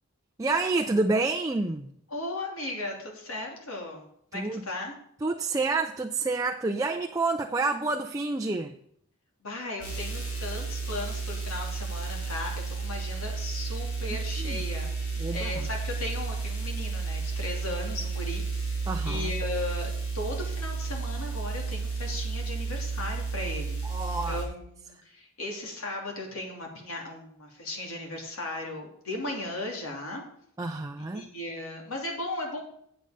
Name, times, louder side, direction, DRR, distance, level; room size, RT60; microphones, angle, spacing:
voice 1, 0.4-1.9 4.3-4.6 5.2-8.8 14.4-14.6 15.2-15.7 18.9-19.3 23.8-24.4 30.6-31.3, right 3 dB, 15° right, 0.4 m, -28 dB
voice 2, 2.1-4.9 9.4-18.4 18.8-23.8 24.2-30.2 31.1-32.6, left 2 dB, 70° left, 2.8 m, -36 dB
sound 1, 9.8-24.4, right 4 dB, 85° left, 4.3 m, -32 dB
8.6 x 7.9 x 5.1 m
head